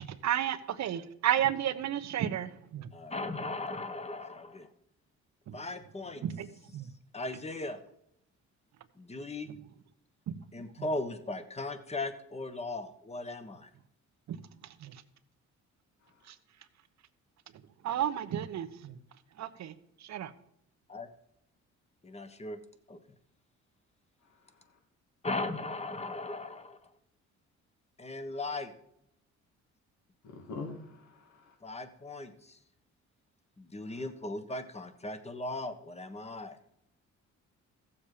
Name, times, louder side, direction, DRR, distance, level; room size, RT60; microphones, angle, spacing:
voice 1, 0.1-2.9 5.5-5.6 6.2-6.9 10.3-10.4 14.3-14.4 14.8-15.0 16.3-16.4 17.8-19.0 19.4-19.7 20.0-20.3, right 10 dB, 65° right, 12 dB, 0.9 m, -32 dB
voice 2, 2.9-4.7 5.5-6.2 7.1-7.8 9.0-9.5 10.5-13.7 20.9-21.1 22.0-22.6 22.9-23.0 25.2-26.8 28.0-28.7 31.6-32.6 33.6-36.6, left 2 dB, 20° left, 10 dB, 1.3 m, -38 dB
voice 3, 30.2-31.5, left 3 dB, 70° left, 2 dB, 2.3 m, -43 dB
15.0 x 7.3 x 5.0 m, 0.74 s
cardioid pair, 90°, 30 cm